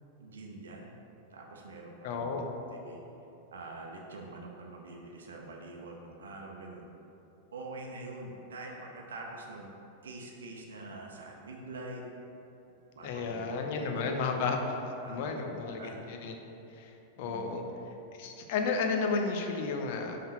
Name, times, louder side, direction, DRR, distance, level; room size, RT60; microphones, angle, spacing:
voice 1, 0.2-0.9 1.3-2.4 2.8-3.0 3.5-6.9 7.5-9.7 10.0-12.0 12.9-14.4 14.8-16.0 17.2-17.7, right 2 dB, 70° right, 0 dB, 0.7 m, -45 dB
voice 2, 2.0-2.5 13.0-14.6 15.1-16.3 16.7-17.6 18.2-20.2, left 4 dB, 55° left, 3 dB, 0.7 m, -32 dB
5.5 x 3.8 x 5.7 m, 2.9 s
figure-of-eight pair, 95°, 0 cm